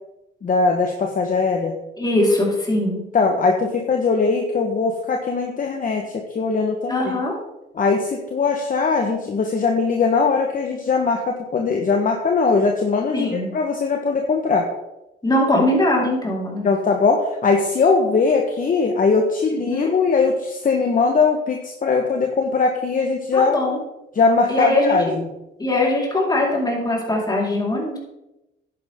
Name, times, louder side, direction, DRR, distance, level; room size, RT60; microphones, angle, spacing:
voice 1, 0.4-1.8 3.1-7.1 7.7-14.6 16.6-23.5 24.1-25.1, left 4 dB, 40° left, 2 dB, 1.3 m, -20 dB
voice 2, 2.0-3.0 6.9-7.3 13.1-13.5 15.2-16.7 19.5-19.9 23.3-23.8 24.5-25.0 25.6-28.0, left 1 dB, 20° left, -3 dB, 4.4 m, -21 dB
10.5 x 9.7 x 3.7 m, 0.93 s
cardioid pair, 90°, 20 cm